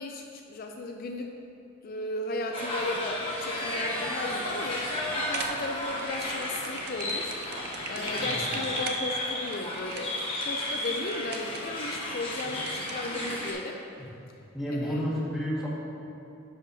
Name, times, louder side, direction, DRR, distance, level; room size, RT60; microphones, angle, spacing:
voice 1, 0.0-1.3 1.8-4.9 5.2-7.4 7.8-13.8 14.7-15.0, left 2 dB, 50° left, 2 dB, 0.4 m, -35 dB
sound 1, 2.5-13.5, left 1 dB, 30° left, 1.2 m, -33 dB
sound 2, 2.7-8.8, right 1 dB, 40° right, 1.0 m, -45 dB
sound 3, 5.3-13.3, right 5 dB, 55° right, 0.5 m, -42 dB
voice 2, 14.5-15.7, equal, 5° right, -8 dB, 1.6 m, -30 dB
10.5 x 6.4 x 2.7 m, 2.7 s
head